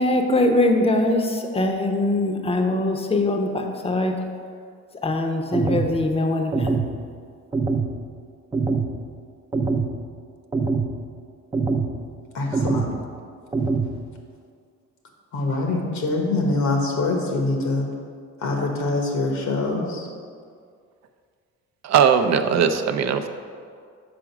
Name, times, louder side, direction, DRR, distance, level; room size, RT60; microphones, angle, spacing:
voice 1, 0.0-4.1 5.0-6.8, left 2 dB, 20° left, 4 dB, 0.7 m, -22 dB
sound 1, 5.5-5.9 6.5-6.9 7.5-7.9 8.5-8.9 9.5-9.9 10.5-10.9 11.5-11.9 12.5-12.9 13.5-13.9, right 4 dB, 15° right, 0.5 m, -23 dB
voice 2, 12.3-12.9 15.3-17.9 18.4-20.1, left 2 dB, 70° left, 1 dB, 1.3 m, -24 dB
voice 3, 21.8-23.3, right 7 dB, 60° right, 8 dB, 0.5 m, -19 dB
5.0 x 4.9 x 5.9 m, 2.2 s
cardioid pair, 90°, 30 cm